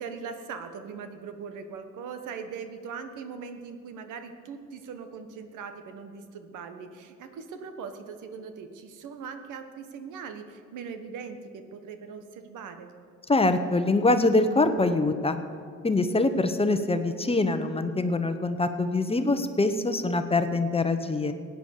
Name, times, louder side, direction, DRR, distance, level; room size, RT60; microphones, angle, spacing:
voice 1, 0.0-12.9, right 6 dB, 85° right, 8 dB, 1.3 m, -40 dB
voice 2, 13.3-15.4 15.8-21.3, left 2 dB, 20° left, 9 dB, 1.0 m, -24 dB
16.5 x 9.3 x 6.7 m, 2.2 s
cardioid pair, 90°, 30 cm